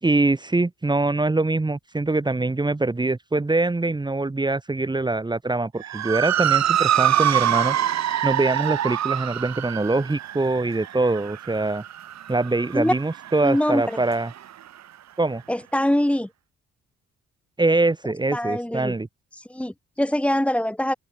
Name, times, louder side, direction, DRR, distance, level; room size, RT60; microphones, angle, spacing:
voice 1, 0.0-7.8 8.2-11.8 12.3-14.3 15.2-15.4 17.6-19.1, right 2 dB, 15° right, 2.3 m, -23 dB
Motor vehicle (road) / Siren, 5.8-14.4, right 11 dB, 65° right, 2.8 m, -25 dB
voice 2, 13.4-14.0 15.5-16.3 18.3-18.9 19.3-20.9, left 1 dB, 5° left, 4.3 m, -23 dB
open air
cardioid pair, 115°, 30 cm